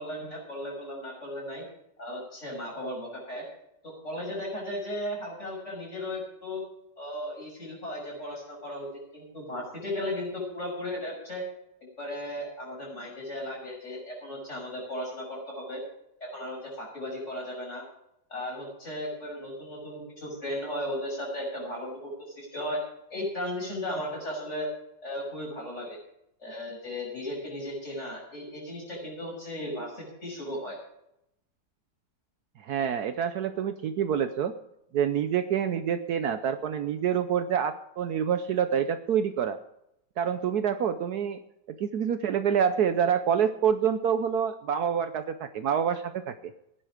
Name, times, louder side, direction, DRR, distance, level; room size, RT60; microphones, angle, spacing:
voice 1, 0.0-1.6 2.0-3.4 3.8-6.6 7.0-11.4 12.0-15.8 16.2-17.8 18.3-22.8 23.1-24.7 25.0-26.0 26.4-30.8, left 1 dB, 40° left, -2 dB, 6.6 m, -36 dB
voice 2, 32.6-34.6 34.9-39.6 40.2-41.4 41.7-46.5, right 8 dB, 65° right, 10 dB, 1.1 m, -27 dB
16.5 x 10.0 x 5.0 m, 0.80 s
omnidirectional pair, 1.9 m